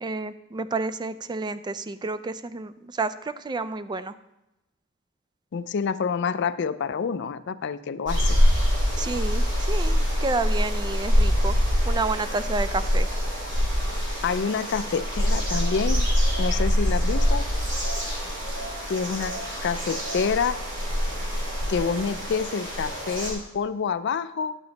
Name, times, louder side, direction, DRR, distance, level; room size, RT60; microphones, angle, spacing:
voice 1, 0.0-3.1 3.4-4.1 9.0-11.5 11.9-13.1, right 3 dB, 20° right, 13 dB, 0.3 m, -30 dB
voice 2, 5.5-8.4 14.2-16.1 16.4-17.5 18.9-19.3 19.6-20.6 21.7-24.6, left 6 dB, 60° left, 14 dB, 0.4 m, -27 dB
sound 1, 8.1-23.3, equal, 60° right, 2.8 m, -25 dB
10.5 x 6.8 x 4.0 m, 0.95 s
head